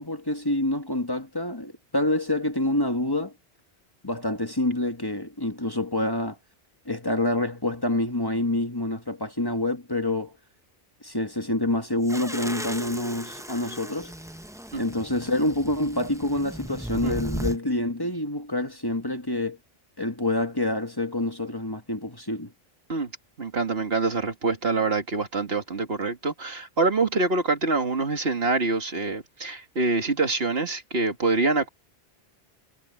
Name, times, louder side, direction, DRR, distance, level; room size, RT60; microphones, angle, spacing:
voice 1, 0.0-3.3 4.0-6.4 6.8-10.4 11.0-14.1 14.7-19.6 20.0-22.5, left 1 dB, 20° left, 1.7 m, -27 dB
sound 1, 12.0-17.6, right 1 dB, 5° right, 0.6 m, -36 dB
voice 2, 23.4-31.7, right 3 dB, 75° right, 2.4 m, -25 dB
omnidirectional pair, 1.0 m